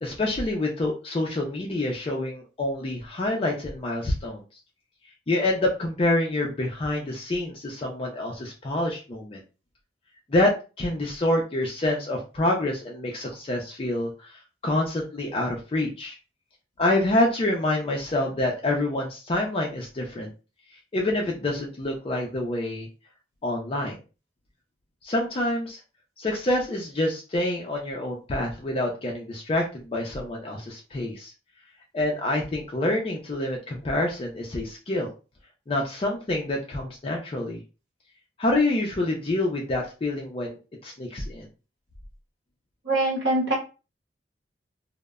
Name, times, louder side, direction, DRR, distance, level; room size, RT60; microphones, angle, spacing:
voice 1, 0.0-4.4 5.3-9.4 10.3-10.5 10.8-16.2 16.8-20.3 20.9-22.9 23.4-24.0 25.0-25.8 26.2-31.3 31.9-35.1 35.7-37.6 38.4-40.6 40.8-41.5, left 1 dB, 30° left, 0 dB, 0.4 m, -27 dB
voice 2, 42.8-43.5, right 2 dB, 80° right, -3 dB, 0.8 m, -23 dB
2.1 x 2.0 x 3.4 m, 0.32 s
head